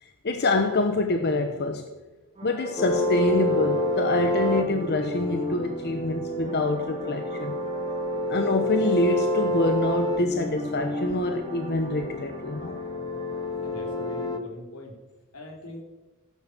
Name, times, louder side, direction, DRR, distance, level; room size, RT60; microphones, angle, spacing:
voice 1, 0.0-1.8 2.4-7.6 8.3-12.8, left 2 dB, 50° left, 5 dB, 1.1 m, -26 dB
sound 1, 2.3-14.3, right 1 dB, 30° right, 2.9 m, -44 dB
sound 2, 2.8-14.4, left 1 dB, 20° left, 1.0 m, -29 dB
voice 2, 13.6-14.9 15.3-15.8, left 1 dB, 85° left, 0 dB, 3.5 m, -41 dB
16.0 x 9.6 x 6.2 m, 1.1 s
head